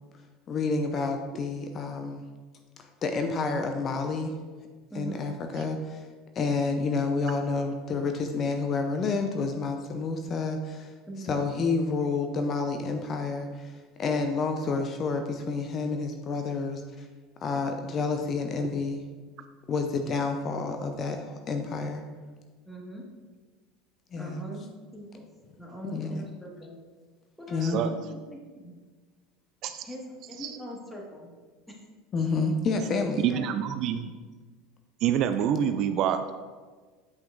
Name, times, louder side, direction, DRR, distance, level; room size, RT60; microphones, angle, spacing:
voice 1, 0.5-2.3 3.0-4.3 5.0-6.1 6.4-10.9 11.3-17.1 17.4-19.0 19.7-22.0 24.1-24.4 25.9-26.3 27.5-27.8 32.1-33.3, left 4 dB, 40° left, 5 dB, 0.5 m, -29 dB
voice 2, 4.9-5.3 11.1-11.4 22.6-23.0 24.1-25.3 25.6-26.8 27.4-28.7 29.8-31.3 33.0-33.4, right 1 dB, 5° left, -2 dB, 1.6 m, -42 dB
voice 3, 27.6-27.9 29.6-29.9 30.4-30.6 33.2-34.1 35.0-36.3, right 9 dB, 50° right, 9 dB, 0.3 m, -27 dB
7.9 x 5.7 x 2.5 m, 1.4 s
hypercardioid pair, 80°, 0 cm